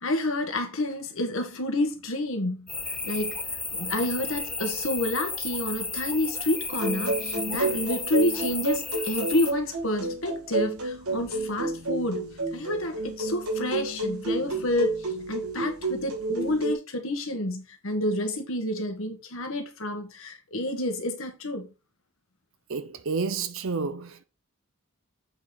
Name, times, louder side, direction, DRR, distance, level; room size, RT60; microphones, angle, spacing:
voice 1, 0.0-2.7 3.0-3.4 3.7-21.7, left 1 dB, 65° left, 1.7 m, -29 dB
sound 1, 2.7-9.5, left 3 dB, 5° left, 0.3 m, -33 dB
sound 2, 6.7-16.7, right 2 dB, 90° right, 2.3 m, -30 dB
voice 2, 22.7-24.2, right 4 dB, 60° right, 0.7 m, -30 dB
7.9 x 5.1 x 4.0 m
head